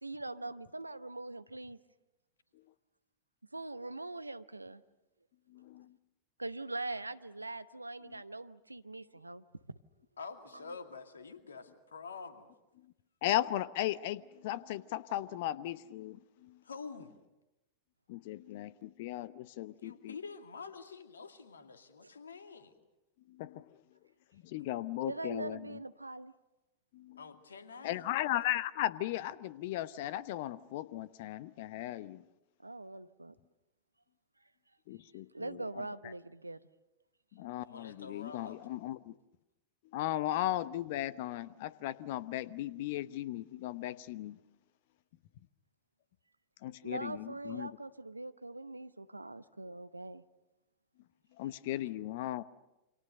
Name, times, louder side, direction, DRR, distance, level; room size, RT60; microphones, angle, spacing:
voice 1, 0.0-1.8 3.5-4.8 6.4-9.8 22.0-22.1 25.0-26.3 32.6-33.3 35.3-36.6 46.8-50.2, right 2 dB, 85° right, 14 dB, 0.9 m, -42 dB
voice 2, 10.2-12.5 16.6-17.1 19.8-22.7 27.2-28.0 37.6-38.6, left 5 dB, 70° left, 8 dB, 2.2 m, -47 dB
voice 3, 13.2-16.6 18.1-20.2 23.3-23.7 24.4-25.8 26.9-27.2 27.8-32.2 34.9-35.6 37.3-39.1 39.9-44.4 46.6-47.7 51.4-52.4, left 14 dB, 50° left, 18 dB, 0.9 m, -36 dB
29.0 x 26.0 x 6.6 m, 0.97 s
figure-of-eight pair, 90°, 0 cm